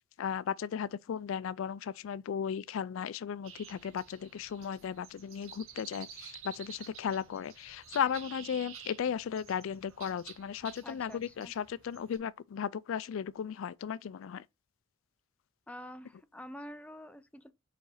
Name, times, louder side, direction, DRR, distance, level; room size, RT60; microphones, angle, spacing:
voice 1, 0.2-14.4, left 7 dB, 70° left, 0.3 m, -36 dB
sound 1, 3.4-12.2, right 7 dB, 85° right, 1.5 m, -51 dB
voice 2, 10.8-11.5 15.7-17.5, equal, 5° left, 0.5 m, -47 dB
5.0 x 4.9 x 5.5 m
head